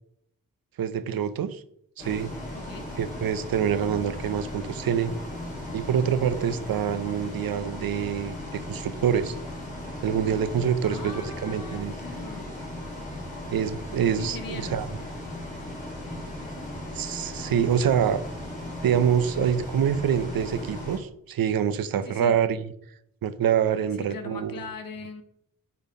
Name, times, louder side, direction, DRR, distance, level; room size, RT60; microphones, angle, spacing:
voice 1, 0.8-1.6 2.0-2.3 3.0-5.1 5.7-9.4 10.0-11.9 13.5-14.9 16.9-18.2 18.8-22.7 23.2-24.6, right 8 dB, 80° right, 13 dB, 0.8 m, -26 dB
Bus, 2.0-21.0, left 1 dB, 20° left, 3.8 m, -37 dB
voice 2, 2.5-2.9 10.8-12.5 14.2-14.9 22.0-22.4 23.9-25.2, left 4 dB, 75° left, 7 dB, 1.4 m, -40 dB
9.1 x 4.4 x 5.3 m, 0.73 s
wide cardioid pair, 110°, 35 cm